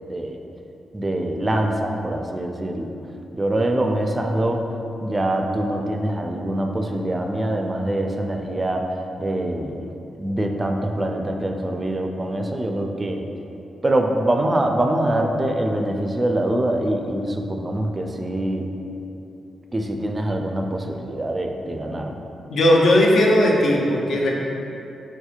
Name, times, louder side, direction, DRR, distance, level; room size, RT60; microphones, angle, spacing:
voice 1, 0.9-2.9 3.3-4.7 5.0-8.9 9.2-9.9 10.2-13.2 13.8-18.7 19.7-22.2, right 1 dB, 30° right, 3 dB, 0.3 m, -24 dB
voice 2, 22.5-24.4, left 1 dB, 70° left, -2 dB, 0.5 m, -17 dB
4.1 x 2.8 x 2.4 m, 2.8 s
supercardioid pair, 45°, 0 cm